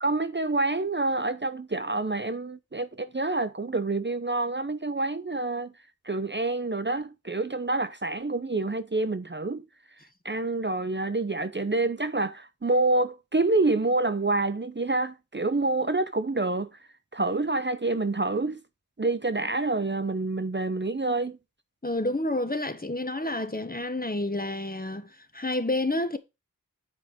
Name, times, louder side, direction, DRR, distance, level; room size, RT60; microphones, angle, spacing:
voice 1, 0.0-5.7 6.0-9.6 10.2-16.7 17.1-18.6 19.0-21.4, right 2 dB, 35° right, 0.7 m, -27 dB
voice 2, 21.8-26.2, left 2 dB, 25° left, 1.4 m, -29 dB
10.0 x 5.1 x 5.0 m
wide cardioid pair, 40°, 33 cm